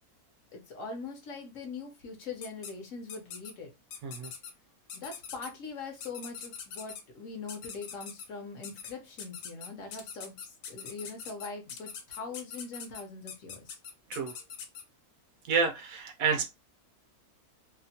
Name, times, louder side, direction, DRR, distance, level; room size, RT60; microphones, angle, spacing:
voice 1, 0.5-3.7 4.9-13.8, left 4 dB, 60° left, 1.0 m, -42 dB
sound 1, 2.4-2.7 3.1-3.5 3.9-4.5 4.9-5.5 6.0-7.0 7.5-8.3 8.6-8.9 9.2-14.8, left 7 dB, 85° left, 1.1 m, -42 dB
voice 2, 15.5-16.5, right 5 dB, 70° right, 1.0 m, -29 dB
2.8 x 2.1 x 2.7 m
omnidirectional pair, 1.6 m